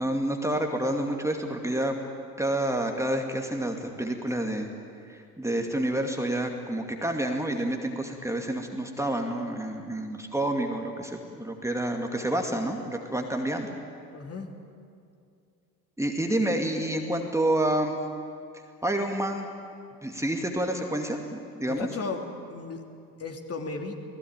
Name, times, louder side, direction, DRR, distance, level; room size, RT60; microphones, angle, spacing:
voice 1, 0.0-2.0 2.4-4.7 5.1-13.8 16.0-18.0 18.8-19.5 20.0-21.9, right 1 dB, 5° right, 3 dB, 2.4 m, -28 dB
voice 2, 14.1-14.5 21.7-22.9 23.2-24.0, left 4 dB, 30° left, 3 dB, 3.0 m, -36 dB
29.0 x 19.5 x 9.0 m, 2.4 s
figure-of-eight pair, 60°, 48 cm